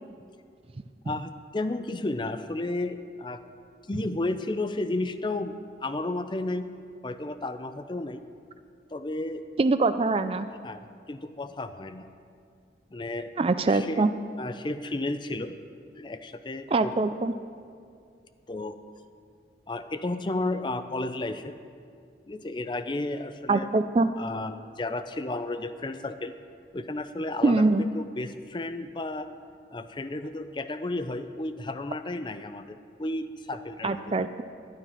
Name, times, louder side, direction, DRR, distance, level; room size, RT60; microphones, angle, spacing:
voice 1, 1.0-3.4 3.9-5.5 5.8-6.7 7.0-8.2 8.9-9.4 10.6-12.1 12.9-13.3 13.7-14.0 14.4-15.6 15.9-16.9 18.5-18.8 19.7-21.6 22.3-23.7 24.2-26.3 26.7-29.3 29.7-34.0, left 2 dB, 25° left, 10 dB, 0.5 m, -32 dB
voice 2, 9.6-10.5 13.4-14.1 16.7-17.3 23.5-24.1 27.4-27.8 33.8-34.4, right 3 dB, 30° right, 11 dB, 0.4 m, -23 dB
12.5 x 10.5 x 5.7 m, 2.3 s
head